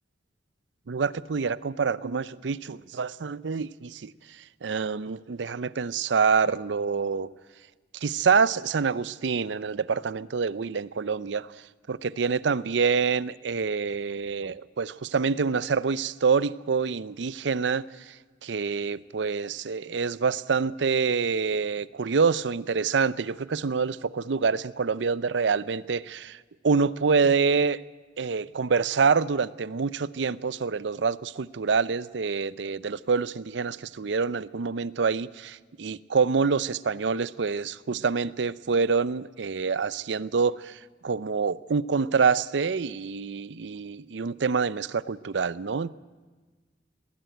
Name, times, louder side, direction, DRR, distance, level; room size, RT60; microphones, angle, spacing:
voice 1, 0.9-7.3 7.9-11.5 11.9-18.2 18.4-27.8 28.2-45.9, right 5 dB, 80° right, 18 dB, 0.5 m, -26 dB
20.5 x 15.5 x 9.1 m, 1.3 s
head